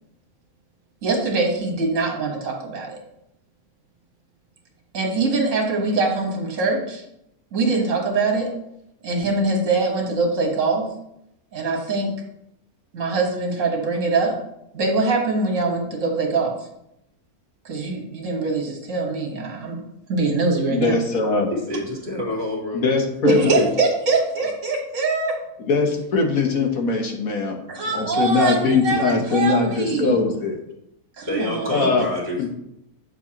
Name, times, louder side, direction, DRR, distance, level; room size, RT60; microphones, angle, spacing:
voice 1, 1.0-3.0 4.9-7.0 7.5-8.5 9.0-10.9 11.5-12.1 12.9-14.4 14.7-16.5 17.7-19.8 20.1-21.0 23.2-25.4 27.7-30.2 31.2-31.9, right 3 dB, 60° right, 1 dB, 1.8 m, -23 dB
voice 2, 20.7-21.5 22.7-23.7 25.6-27.6 27.9-30.6 31.7-32.1 32.4-32.5, left 4 dB, 70° left, 3 dB, 1.5 m, -21 dB
voice 3, 21.5-23.0 31.3-32.5, left 1 dB, 40° right, -2 dB, 2.3 m, -28 dB
7.8 x 6.9 x 2.9 m, 0.80 s
omnidirectional pair, 1.6 m